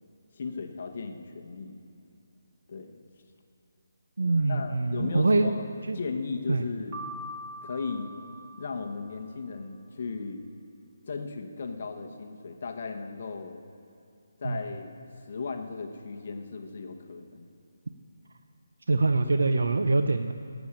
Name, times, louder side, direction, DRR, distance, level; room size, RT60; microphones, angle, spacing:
voice 1, 0.3-1.8 2.7-3.0 4.5-5.6 5.9-7.0 7.6-8.1 8.6-10.4 11.1-13.6 14.4-15.0 15.3-17.5, left 4 dB, 35° left, 4 dB, 1.0 m, -36 dB
voice 2, 4.2-5.6 5.9-6.0 6.5-6.6 14.4-14.6 18.9-20.3, right 3 dB, 80° right, 8 dB, 0.6 m, -24 dB
Piano, 6.9-9.1, equal, 20° right, 1.6 m, -42 dB
16.5 x 7.1 x 8.8 m, 2.6 s
hypercardioid pair, 175°, 0 cm